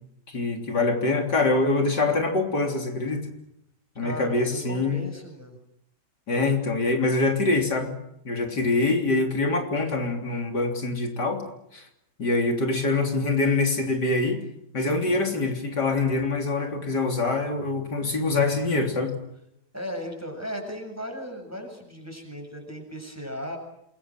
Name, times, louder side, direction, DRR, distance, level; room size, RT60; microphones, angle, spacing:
voice 1, 0.3-3.3 4.0-5.1 6.3-7.9 8.3-11.4 11.7-11.9 12.2-14.4 14.7-19.1, left 3 dB, 75° left, 3 dB, 4.0 m, -24 dB
voice 2, 4.0-5.6 19.7-23.6, equal, 10° right, 3 dB, 7.3 m, -36 dB
28.0 x 23.0 x 7.6 m, 0.78 s
omnidirectional pair, 1.8 m